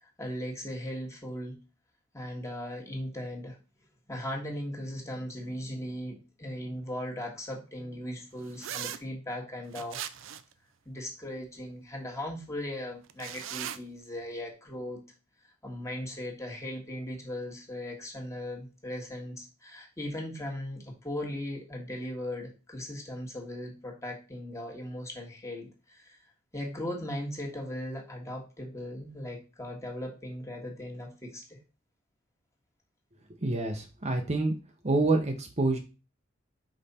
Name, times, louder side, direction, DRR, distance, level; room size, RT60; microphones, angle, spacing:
voice 1, 0.0-1.6 2.1-3.6 4.1-10.0 10.8-15.0 15.6-26.2 26.5-31.6, left 1 dB, 15° left, 0 dB, 1.6 m, -38 dB
sound 1, 8.6-9.0 9.7-10.5 13.1-13.8, right 10 dB, 70° right, 0.5 m, -38 dB
voice 2, 33.4-34.6 34.8-35.8, right 2 dB, 35° right, 4 dB, 0.8 m, -27 dB
5.3 x 4.9 x 4.2 m, 0.31 s
head